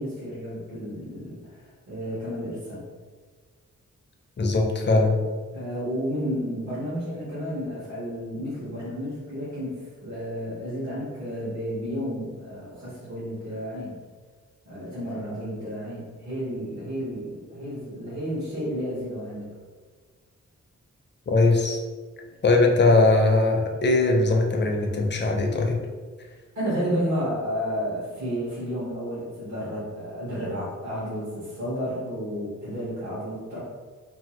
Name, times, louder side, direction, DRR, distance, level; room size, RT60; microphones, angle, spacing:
voice 1, 0.0-2.9 5.5-13.9 14.6-19.5 26.5-33.6, equal, 60° right, -10 dB, 1.1 m, -31 dB
voice 2, 4.4-5.2 21.3-21.8 22.4-25.8, left 2 dB, 35° left, 2 dB, 0.4 m, -20 dB
2.7 x 2.3 x 2.9 m, 1.5 s
wide cardioid pair, 120°, 31 cm